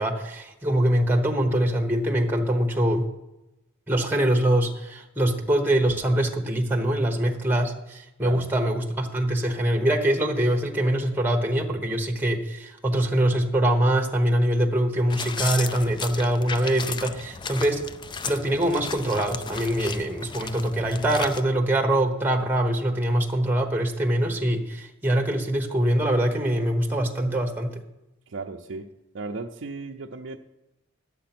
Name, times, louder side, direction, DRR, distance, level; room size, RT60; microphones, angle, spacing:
voice 1, 0.0-3.1 3.9-17.8 18.3-27.8, right 1 dB, 10° right, 3 dB, 0.9 m, -23 dB
sound 1, 15.1-21.4, left 5 dB, 20° left, 0.3 m, -35 dB
voice 2, 28.3-28.9 29.1-30.4, right 3 dB, 60° right, 0 dB, 0.5 m, -35 dB
10.5 x 7.6 x 5.9 m, 0.94 s
head